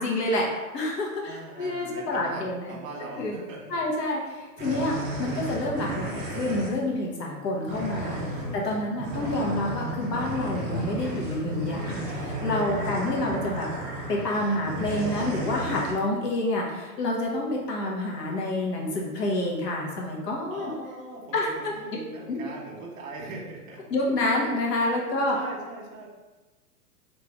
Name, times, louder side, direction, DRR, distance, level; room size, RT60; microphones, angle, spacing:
voice 1, 0.0-2.8 3.2-3.3 3.7-8.2 8.5-13.7 14.1-20.7 21.3-21.7 22.3-22.4 23.9-25.4, left 1 dB, 85° left, -2 dB, 1.2 m, -28 dB
voice 2, 1.2-3.8 8.4-8.9 12.7-13.1 20.5-23.8 25.0-25.1 25.3-26.1, right 2 dB, 55° right, -1 dB, 1.2 m, -41 dB
sound 1, 4.6-6.7 7.6-15.9, right 1 dB, 20° right, 0.6 m, -33 dB
3.0 x 2.9 x 3.6 m, 1.2 s
hypercardioid pair, 125°, 48 cm